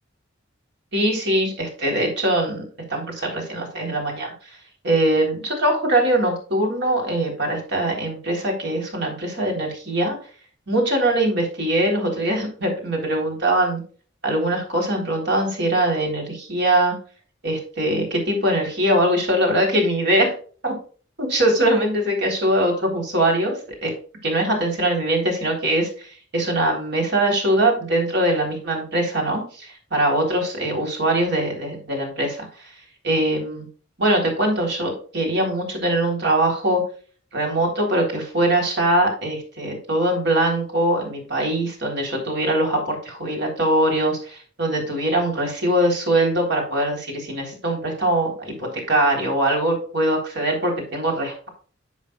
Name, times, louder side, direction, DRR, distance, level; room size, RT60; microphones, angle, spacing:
voice 1, 0.9-2.6 2.9-4.3 4.8-10.2 10.7-13.8 14.2-17.0 17.4-20.3 20.6-20.7 21.2-23.9 24.2-25.9 26.3-32.5 33.0-33.7 34.0-36.8 37.3-51.5, right 1 dB, 60° right, 1 dB, 3.8 m, -22 dB
11.0 x 7.4 x 2.4 m, 0.41 s
head